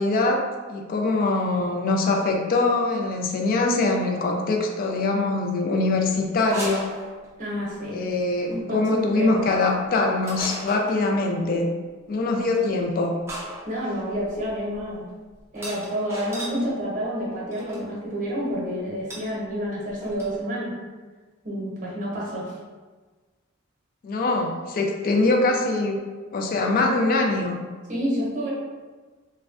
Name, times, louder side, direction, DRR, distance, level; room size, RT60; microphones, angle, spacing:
voice 1, 0.0-6.9 7.9-11.7 12.1-13.2 24.0-26.0 26.3-27.6, left 2 dB, 45° left, 2 dB, 0.3 m, -23 dB
sound 1, 6.4-7.6 8.4-8.6 10.2-11.0 12.5-12.7 13.3-16.6 17.5-17.8 19.1-19.3 19.6-19.7 19.9-20.4, right 1 dB, 15° right, 0.6 m, -36 dB
voice 2, 7.4-8.0 8.5-9.4 13.6-15.1 15.5-20.7 21.4-22.6 27.9-28.5, equal, 40° right, -5 dB, 0.9 m, -29 dB
3.3 x 2.1 x 2.5 m, 1.4 s
head